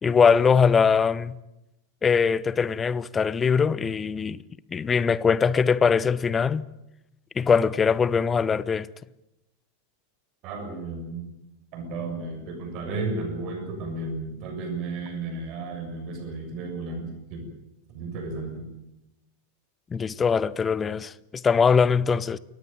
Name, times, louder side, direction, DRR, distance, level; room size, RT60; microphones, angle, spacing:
voice 1, 0.0-1.4 2.0-4.4 4.7-6.7 7.4-8.9 19.9-22.4, left 6 dB, 20° left, 0.7 m, -22 dB
voice 2, 10.4-11.2 11.7-17.4 17.9-18.7, right 3 dB, 40° right, 7.0 m, -33 dB
23.0 x 18.5 x 9.2 m
figure-of-eight pair, 90°, 0 cm